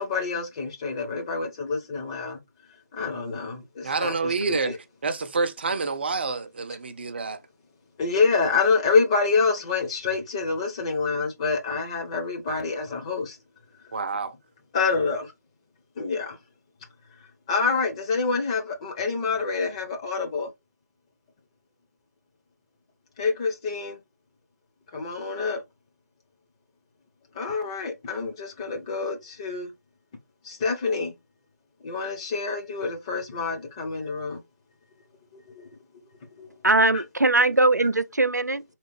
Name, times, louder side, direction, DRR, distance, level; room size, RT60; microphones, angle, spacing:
voice 1, 0.0-2.4 2.9-4.3 4.7-4.8 8.0-13.4 14.7-15.3 16.0-16.4 17.5-20.5 23.2-24.0 24.9-25.6 27.3-29.7 30.4-31.1 31.8-34.4 35.3-35.7 36.4-36.5, left 4 dB, 20° left, 0.9 m, -27 dB
voice 2, 3.8-7.4 13.9-14.3, right 4 dB, 40° right, 0.6 m, -28 dB
voice 3, 36.6-38.6, right 2 dB, 90° right, 0.5 m, -20 dB
5.0 x 3.3 x 3.2 m
figure-of-eight pair, 150°, 9 cm